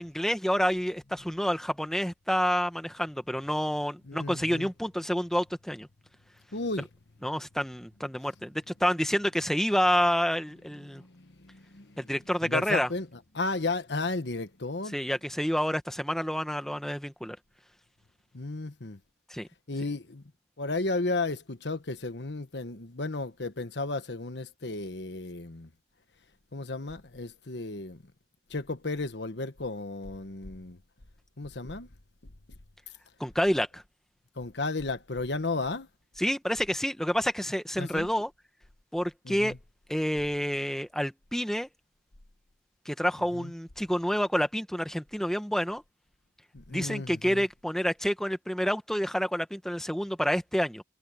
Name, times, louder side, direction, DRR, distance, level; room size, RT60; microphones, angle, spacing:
voice 1, 0.0-5.9 7.2-11.0 12.0-12.9 14.9-17.4 19.3-19.5 33.2-33.8 36.2-38.3 38.9-39.5 39.9-41.7 42.8-45.8 46.7-50.8, equal, 5° left, 1.3 m, -28 dB
voice 2, 4.1-4.7 6.5-6.9 10.8-12.1 12.4-15.0 18.3-19.0 19.7-20.2 20.6-25.7 26.5-28.0 28.5-30.8 31.4-31.9 34.4-35.9 37.8-38.1 39.2-39.6 43.3-43.5 46.5-47.5, left 3 dB, 75° left, 1.4 m, -34 dB
head